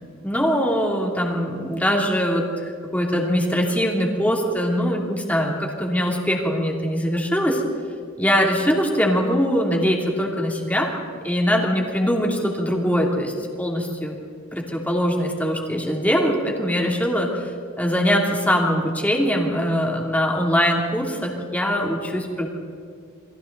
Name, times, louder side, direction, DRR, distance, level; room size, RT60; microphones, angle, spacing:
voice 1, 0.2-7.6 8.2-10.9 11.2-14.2 14.5-17.3 17.8-22.5, equal, 10° left, -1 dB, 3.2 m, -22 dB
29.0 x 22.5 x 4.1 m, 2.2 s
head